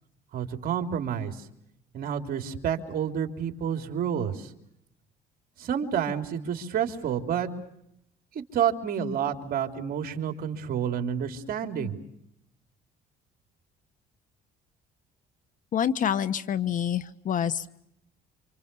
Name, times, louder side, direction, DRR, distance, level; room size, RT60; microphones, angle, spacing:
voice 1, 0.3-1.4 1.9-4.5 5.6-7.5 8.4-12.0, right 8 dB, 60° right, 5 dB, 3.7 m, -29 dB
voice 2, 15.7-17.8, left 9 dB, 50° left, 13 dB, 1.3 m, -27 dB
29.0 x 27.5 x 7.0 m, 0.77 s
cardioid pair, 110°, 17 cm